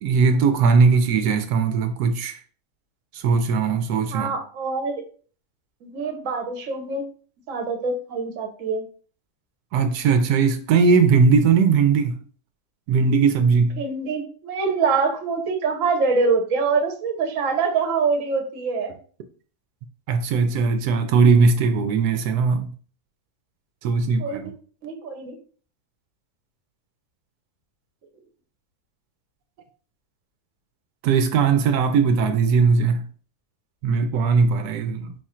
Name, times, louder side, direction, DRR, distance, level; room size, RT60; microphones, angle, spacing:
voice 1, 0.0-2.4 3.1-4.3 9.7-12.2 12.9-13.8 20.1-22.7 23.8-24.5 31.0-33.0 33.8-35.1, right 5 dB, 90° right, 1.2 m, -19 dB
voice 2, 4.1-5.0 5.8-7.0 7.5-8.8 13.8-18.9 24.2-24.4 24.8-25.4, right 4 dB, 60° right, 1.2 m, -24 dB
5.1 x 2.4 x 4.2 m
omnidirectional pair, 1.6 m